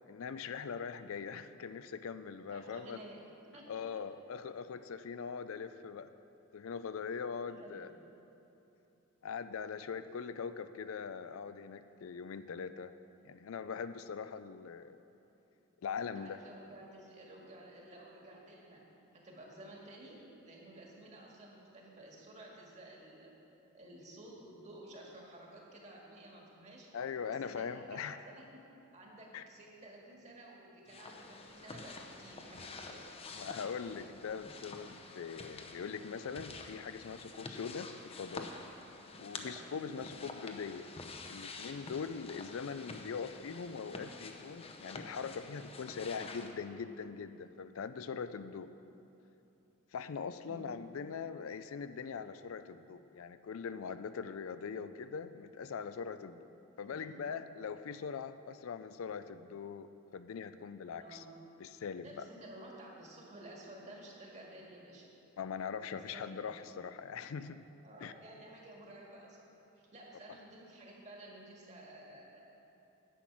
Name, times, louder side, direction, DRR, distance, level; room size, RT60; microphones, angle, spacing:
voice 1, 0.1-3.0 3.7-6.1 6.5-7.9 9.2-12.9 13.2-15.0 15.8-16.4 26.9-28.2 29.3-29.4 33.3-38.5 39.2-40.9 41.3-48.7 49.9-56.5 56.8-61.2 61.6-62.3 65.4-67.7 68.0-68.1, left 6 dB, 70° left, 12 dB, 0.4 m, -42 dB
voice 2, 2.5-3.8 7.5-7.9 16.0-18.8 19.1-23.3 23.7-26.9 27.3-28.6 28.9-33.5 39.3-39.7 50.5-50.8 56.8-57.2 61.0-61.3 62.0-65.1 65.9-66.4 67.8-69.4 69.7-72.4, right 1 dB, 35° right, -2 dB, 1.9 m, -53 dB
sound 1, 30.9-46.5, left 3 dB, 25° left, 0.7 m, -48 dB
10.0 x 8.6 x 6.1 m, 2.9 s
head